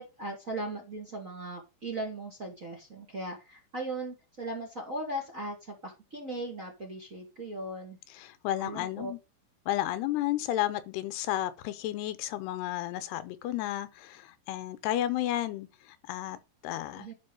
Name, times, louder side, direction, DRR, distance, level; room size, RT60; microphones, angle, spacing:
voice 1, 0.0-8.0 8.6-9.1 17.0-17.1, right 1 dB, 30° right, 1.7 m, -38 dB
voice 2, 8.1-9.2 9.7-16.4 16.6-17.1, left 13 dB, 90° left, 3.0 m, -32 dB
11.0 x 4.8 x 5.4 m
omnidirectional pair, 4.6 m